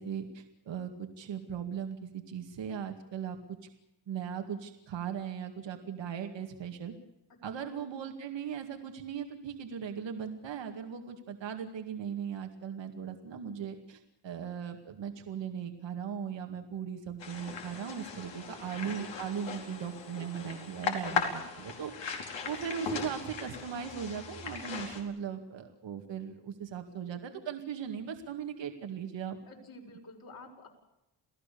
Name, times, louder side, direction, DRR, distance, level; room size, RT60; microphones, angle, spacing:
voice 1, 0.0-3.4 4.1-6.9 7.4-21.9 22.5-29.4, right 8 dB, 75° right, 5 dB, 2.2 m, -38 dB
sound 1, 17.2-25.0, left 6 dB, 75° left, 4.8 m, -38 dB
voice 2, 29.5-30.7, left 2 dB, 55° left, 1 dB, 6.0 m, -50 dB
28.5 x 17.0 x 6.9 m, 0.92 s
wide cardioid pair, 135°, 44 cm